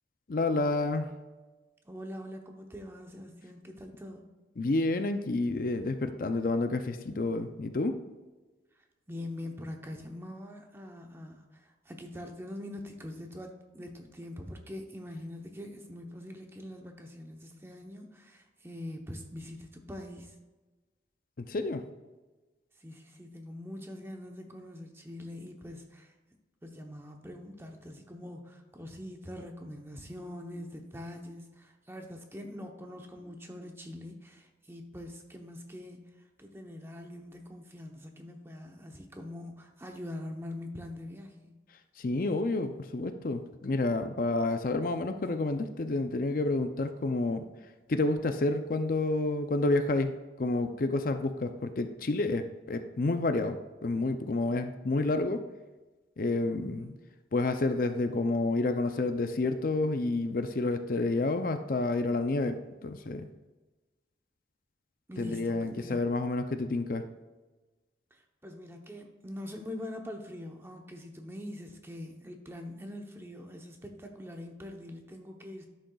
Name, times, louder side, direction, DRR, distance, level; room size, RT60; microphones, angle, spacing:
voice 1, 0.3-1.1 4.6-8.0 21.5-21.8 42.0-47.5 47.9-55.4 56.2-56.9 57.3-63.3 65.2-67.0, left 2 dB, 50° left, 8 dB, 0.5 m, -29 dB
voice 2, 1.8-4.3 9.1-20.3 22.8-26.1 26.6-36.1 36.4-41.5 56.3-57.0 65.1-66.0 68.1-75.7, left 1 dB, 15° right, 3 dB, 0.8 m, -43 dB
11.5 x 6.6 x 2.3 m, 1.2 s
head